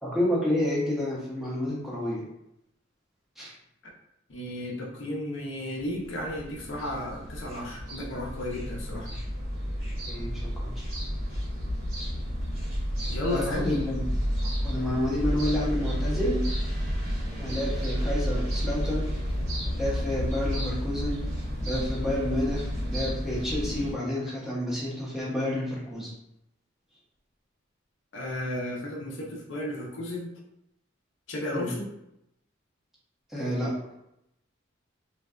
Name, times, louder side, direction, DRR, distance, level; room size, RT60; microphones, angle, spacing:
voice 1, 0.0-2.3 3.4-3.5 10.1-10.8 13.3-14.2 14.6-16.4 17.4-19.1 19.8-21.2 21.6-26.1 31.5-31.7 33.3-33.7, left 1 dB, ahead, -7 dB, 0.5 m, -30 dB
voice 2, 4.3-9.1 13.1-13.8 28.1-30.3 31.3-31.9, left 1 dB, 65° left, -2 dB, 0.5 m, -33 dB
sound 1, 5.8-23.9, equal, 85° right, 1.2 m, -31 dB
2.6 x 2.1 x 2.3 m, 0.83 s
head